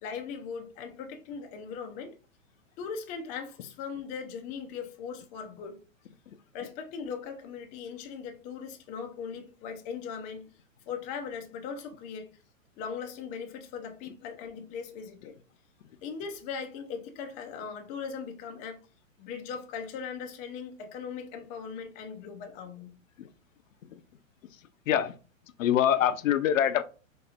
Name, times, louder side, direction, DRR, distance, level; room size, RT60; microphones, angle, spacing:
voice 1, 0.0-2.1 2.8-5.8 6.5-10.4 10.9-12.3 12.8-15.3 16.0-18.8 19.2-22.9, left 6 dB, 20° left, 0.4 m, -39 dB
voice 2, 25.6-26.8, left 10 dB, 75° left, 0.6 m, -24 dB
4.2 x 2.6 x 2.4 m
hypercardioid pair, 115°, 40 cm